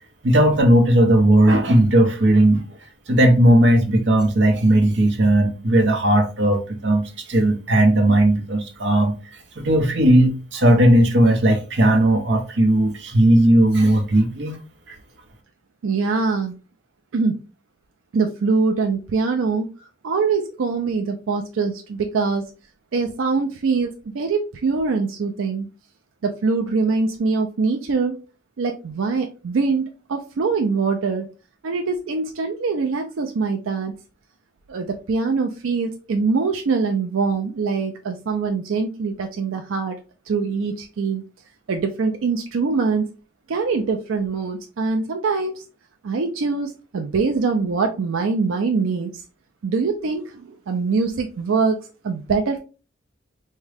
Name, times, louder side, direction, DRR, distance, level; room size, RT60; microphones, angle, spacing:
voice 1, 0.2-2.6 3.1-9.1 9.6-14.6 14.9-15.0, right 1 dB, 65° right, 0.8 m, -16 dB
voice 2, 15.8-16.5 17.1-17.4 18.1-19.7 20.0-22.5 22.9-25.7 26.2-28.2 28.6-31.3 31.6-33.9 34.7-40.0 40.3-41.2 41.7-43.1 43.5-45.6 46.0-49.2 49.6-51.8 52.0-52.6, right 4 dB, 90° right, 0.4 m, -23 dB
3.6 x 2.2 x 3.3 m
head